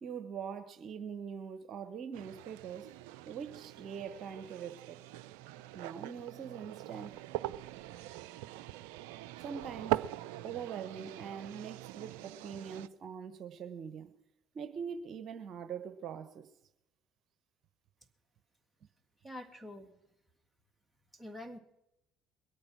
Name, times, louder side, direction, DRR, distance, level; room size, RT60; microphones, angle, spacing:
voice 1, 0.0-2.9 3.3-5.0 5.7-7.3 9.4-10.0 10.4-14.1 14.5-16.5, right 7 dB, 55° right, 1.1 m, -43 dB
sound 1, 2.1-12.9, right 14 dB, 75° right, 0.4 m, -42 dB
voice 2, 19.2-19.9 21.1-21.6, left 1 dB, 5° right, 2.2 m, -46 dB
22.0 x 8.6 x 6.1 m
hypercardioid pair, 65°, 0 cm